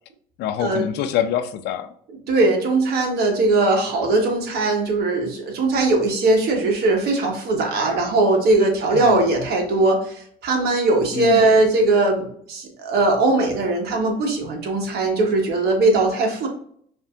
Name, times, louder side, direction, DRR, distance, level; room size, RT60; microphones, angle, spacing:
voice 1, 0.4-1.9 8.9-9.3 11.1-11.4, left 10 dB, 80° left, 0.5 m, -25 dB
voice 2, 2.3-16.5, right 2 dB, 70° right, 1.2 m, -20 dB
5.5 x 2.7 x 2.3 m
cardioid pair, 110°, 17 cm